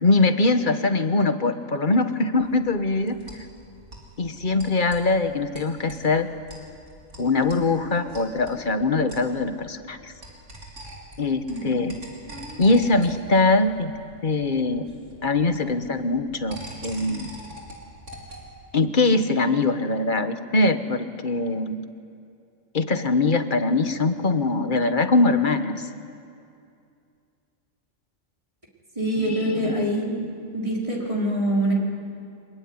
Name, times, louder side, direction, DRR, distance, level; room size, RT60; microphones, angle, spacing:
voice 1, 0.0-3.2 4.2-6.3 7.2-10.1 11.2-11.9 12.6-13.9 14.2-14.8 15.2-17.3 18.7-21.8 22.7-25.9 29.2-30.3, left 3 dB, 40° left, 8 dB, 1.5 m, -22 dB
sound 1, 2.4-18.6, right 1 dB, 65° right, 4.6 m, -44 dB
voice 2, 28.9-30.2 30.5-31.7, right 1 dB, 25° right, -3 dB, 5.0 m, -25 dB
25.5 x 21.5 x 9.9 m, 2.5 s
omnidirectional pair, 1.4 m